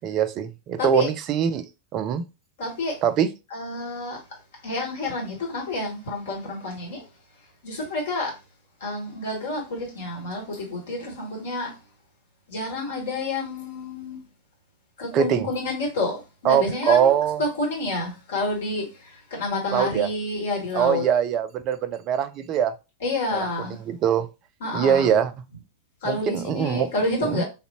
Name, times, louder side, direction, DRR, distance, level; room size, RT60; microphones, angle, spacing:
voice 1, 0.0-1.6 1.9-2.2 3.0-3.3 15.1-15.5 16.4-17.4 19.7-20.1 20.7-22.7 23.3-23.5 23.9-24.3 24.7-25.3 26.0-26.9 27.2-27.4, right 8 dB, 35° right, 0.4 m, -22 dB
voice 2, 0.8-1.1 2.6-3.0 3.5-4.2 4.6-7.0 7.6-8.3 8.8-11.7 12.5-14.2 15.0-21.0 23.0-23.8 24.6-25.2 26.0-27.4, left 2 dB, 60° left, 1.5 m, -29 dB
3.4 x 2.6 x 2.9 m
figure-of-eight pair, 90°, 0 cm